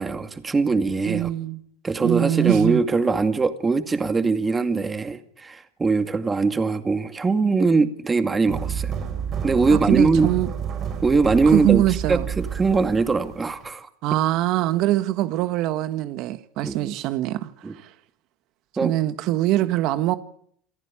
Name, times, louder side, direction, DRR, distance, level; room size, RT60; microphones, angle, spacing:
voice 1, 0.0-1.3 1.8-8.9 9.4-10.3 11.0-11.8 12.1-13.9 16.6-16.9 17.6-17.7 18.8-18.9, right 4 dB, 20° right, 2.2 m, -21 dB
voice 2, 1.0-1.6 2.0-2.8 9.7-10.5 11.5-12.3 14.0-17.9 18.8-20.2, right 14 dB, 60° right, 1.4 m, -23 dB
sound 1, 8.5-13.7, right 7 dB, 40° right, 6.6 m, -30 dB
28.0 x 14.5 x 8.7 m
supercardioid pair, 105°, 0 cm